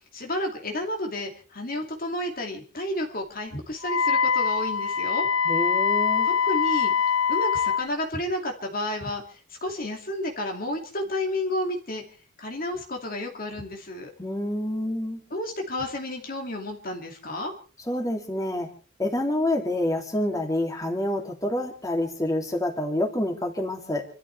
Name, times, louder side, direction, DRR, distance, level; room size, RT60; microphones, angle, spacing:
voice 1, 0.1-5.3 6.2-6.9 7.3-12.0 12.4-14.1 15.3-17.5, left 1 dB, 40° left, 2 dB, 2.6 m, -31 dB
Wind instrument woodwind instrument, 3.8-7.9, left 6 dB, 70° left, 0.7 m, -23 dB
voice 2, 5.5-6.3 14.2-15.2 17.9-18.7 19.0-24.0, left 1 dB, 15° left, 2 dB, 2.9 m, -27 dB
29.0 x 13.0 x 3.4 m, 0.40 s
head